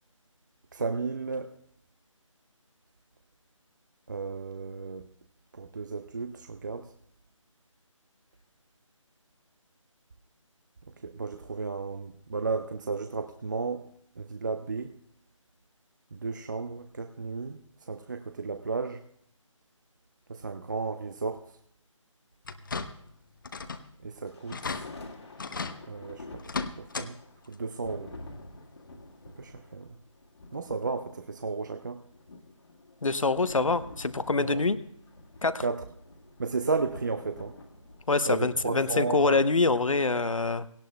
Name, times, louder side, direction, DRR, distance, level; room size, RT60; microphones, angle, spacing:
voice 1, 0.7-1.5 4.1-5.1 5.5-6.9 11.0-13.8 14.2-14.9 16.1-17.6 17.9-19.0 20.3-21.4 24.0-24.6 25.9-26.4 26.8-27.2 27.5-28.1 29.4-29.9 30.5-32.0 34.4-34.6 35.6-35.8 36.4-37.5 38.3-39.4, right 4 dB, 35° right, 9 dB, 0.5 m, -33 dB
sound 1, 22.4-23.1 23.4-23.9 24.2-24.3 24.5-24.8 25.4-25.8 26.4-27.1 27.4-27.6 28.9-29.0 29.5-29.6, left 4 dB, 40° left, 0.7 m, -35 dB
sound 2, 24.3-38.5, left 2 dB, 55° left, 1.8 m, -49 dB
voice 2, 33.0-34.8 35.4-35.6 38.1-40.7, left 3 dB, 80° left, 13 dB, 0.9 m, -25 dB
18.0 x 17.5 x 2.2 m, 0.68 s
figure-of-eight pair, 160°, 17 cm